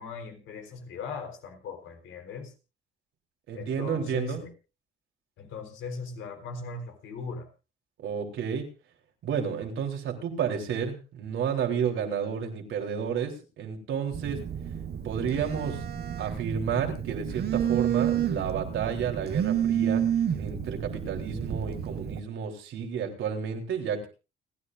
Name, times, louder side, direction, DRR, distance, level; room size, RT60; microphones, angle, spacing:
voice 1, 0.0-2.5 3.5-4.5 5.4-7.5, left 4 dB, 85° left, 4 dB, 4.0 m, -39 dB
voice 2, 3.5-4.5 8.0-8.7 9.2-14.4 15.0-15.8 16.2-20.0 20.4-24.1, right 7 dB, 80° right, 2 dB, 3.6 m, -31 dB
Telephone, 14.1-22.2, right 9 dB, 55° right, 1.4 m, -30 dB
30.0 x 10.5 x 2.6 m, 0.33 s
cardioid pair, 90°, 20 cm